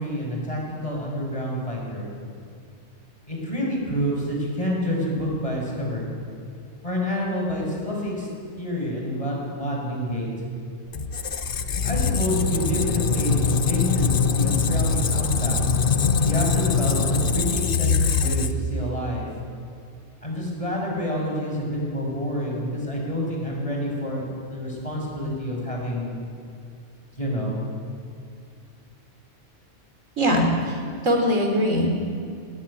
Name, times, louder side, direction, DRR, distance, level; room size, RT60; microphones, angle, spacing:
voice 1, 0.0-2.1 3.3-6.1 6.8-8.3 8.6-10.3 11.7-15.6 16.2-19.3 20.2-26.2 27.2-27.6, equal, 25° left, -2 dB, 6.1 m, -28 dB
Squeak, 10.9-18.8, left 5 dB, 50° left, 1.0 m, -23 dB
voice 2, 30.2-30.8 31.0-31.9, equal, 85° right, 2 dB, 4.0 m, -21 dB
19.0 x 16.0 x 10.0 m, 2.4 s
omnidirectional pair, 1.3 m